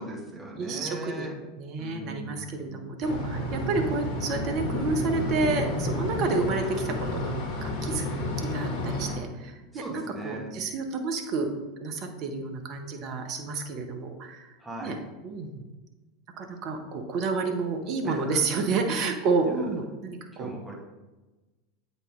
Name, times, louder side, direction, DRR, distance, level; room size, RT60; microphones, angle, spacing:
voice 1, 0.0-1.3 1.8-2.7 9.7-10.5 14.6-15.0 18.0-18.7 19.5-19.6 20.4-20.7, right 1 dB, 10° right, -3 dB, 2.1 m, -39 dB
voice 2, 0.6-1.3 1.6-7.3 7.6-8.1 8.4-11.5 11.8-14.5 14.8-15.0 15.2-15.6 16.4-20.5, right 4 dB, 45° right, 5 dB, 1.0 m, -30 dB
sound 1, 3.0-9.2, left 1 dB, 55° left, 1.4 m, -30 dB
8.1 x 4.1 x 3.8 m, 1.1 s
hypercardioid pair, 85°, 0 cm